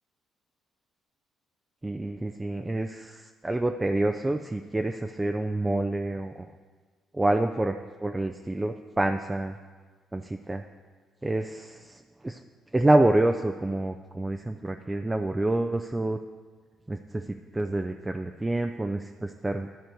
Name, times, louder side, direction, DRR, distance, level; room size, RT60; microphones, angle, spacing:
voice 1, 1.8-6.5 7.1-7.8 8.0-9.5 10.1-10.6 11.2-12.4 12.7-16.2 16.9-19.7, right 2 dB, 20° right, 6 dB, 0.5 m, -27 dB
12.5 x 4.5 x 6.7 m, 1.5 s
figure-of-eight pair, 45°, 0 cm